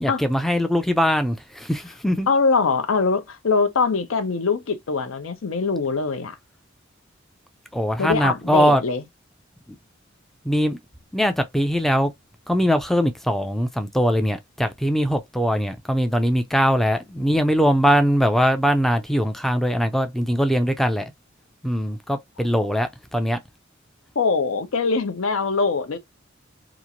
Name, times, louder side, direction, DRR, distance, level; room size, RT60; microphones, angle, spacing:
voice 1, 0.0-2.3 7.7-8.8 9.7-9.8 10.4-10.8 11.1-12.1 12.5-21.1 21.6-23.4, equal, ahead, 0.3 m, -21 dB
voice 2, 2.3-6.4 8.0-9.0 24.2-26.0, left 4 dB, 80° left, 0.6 m, -22 dB
2.9 x 2.4 x 2.5 m
head